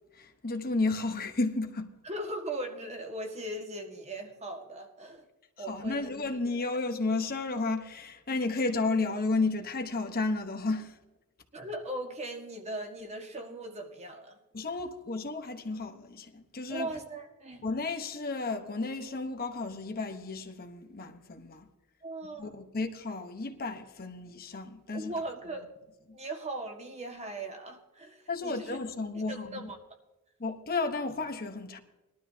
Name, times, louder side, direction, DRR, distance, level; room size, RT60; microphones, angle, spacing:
voice 1, 0.1-1.9 5.6-11.0 14.5-16.9 17.6-21.7 22.4-25.1 28.3-29.7 30.4-31.8, left 3 dB, 45° left, 1.1 m, -32 dB
voice 2, 2.0-5.3 5.6-6.4 11.5-14.4 16.7-17.6 22.0-22.6 24.9-25.7 26.1-28.8 29.3-29.8, right 1 dB, 30° right, 1.7 m, -39 dB
20.5 x 12.5 x 2.8 m
head